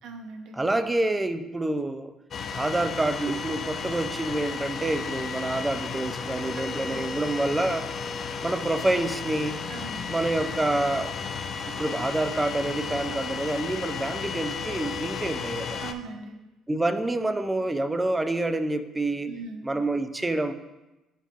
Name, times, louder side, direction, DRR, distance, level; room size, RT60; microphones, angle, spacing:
voice 1, 0.0-0.6 6.5-6.7 9.7-10.1 15.8-16.3 19.3-19.7, right 4 dB, 70° right, 3 dB, 0.9 m, -40 dB
voice 2, 0.5-2.1 2.5-7.9 8.4-9.6 10.1-11.1 11.7-15.8 16.7-19.3 19.6-20.5, right 2 dB, 20° right, 10 dB, 0.5 m, -27 dB
sound 1, 2.3-15.9, left 5 dB, 50° left, 0.5 m, -33 dB
10.5 x 3.8 x 2.5 m, 1.0 s
hypercardioid pair, 60°, 0 cm